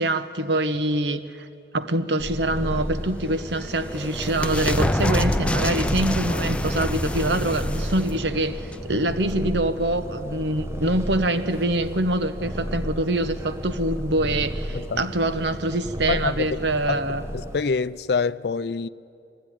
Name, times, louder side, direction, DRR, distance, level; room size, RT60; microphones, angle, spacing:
voice 1, 0.0-1.5 1.7-17.2, right 1 dB, 75° right, 1.0 m, -25 dB
Purr, 2.2-17.6, equal, 15° right, 1.2 m, -33 dB
sound 1, 3.3-9.7, left 1 dB, 5° left, 0.5 m, -27 dB
voice 2, 14.7-15.1 16.1-16.3 16.9-17.0 17.3-18.9, left 5 dB, 65° left, 0.4 m, -26 dB
20.0 x 15.5 x 10.0 m
head